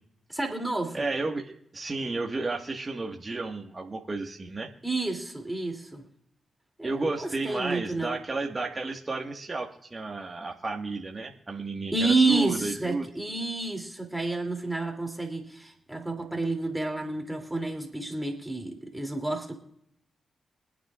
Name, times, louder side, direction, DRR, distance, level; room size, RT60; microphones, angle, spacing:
voice 1, 0.3-1.0 4.8-6.0 6.8-8.2 11.9-19.5, right 3 dB, 15° right, 2 dB, 2.9 m, -29 dB
voice 2, 0.9-4.7 6.8-13.1, right 3 dB, 35° right, 1 dB, 1.7 m, -32 dB
25.5 x 9.2 x 2.5 m, 0.76 s
supercardioid pair, 40°, 0 cm